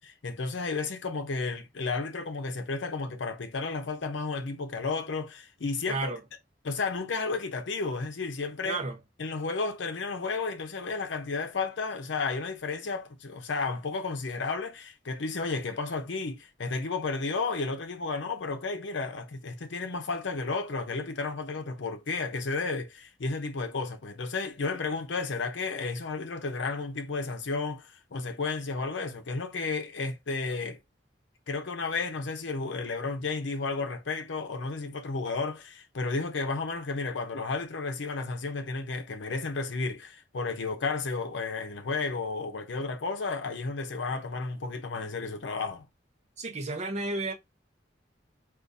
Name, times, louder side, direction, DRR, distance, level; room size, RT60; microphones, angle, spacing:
voice 1, 0.2-6.1 6.6-8.8 9.2-30.8 31.5-45.8, left 4 dB, 75° left, 0.7 m, -32 dB
voice 2, 5.9-6.2 8.6-9.0 46.4-47.3, right 3 dB, 40° right, 0.7 m, -32 dB
3.8 x 2.4 x 2.6 m
head